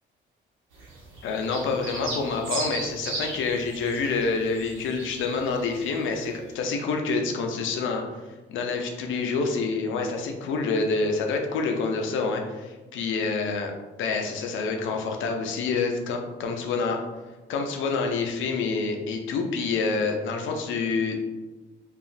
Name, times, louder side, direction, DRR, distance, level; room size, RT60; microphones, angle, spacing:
sound 1, 0.7-5.9 6.1-6.4, right 2 dB, 80° right, 0.9 m, -36 dB
voice 1, 1.2-8.0 8.5-13.7 14.0-17.0 17.5-21.2, left 4 dB, 80° left, 3 dB, 0.5 m, -27 dB
2.8 x 2.3 x 2.6 m, 1.2 s
cardioid pair, 90°, 20 cm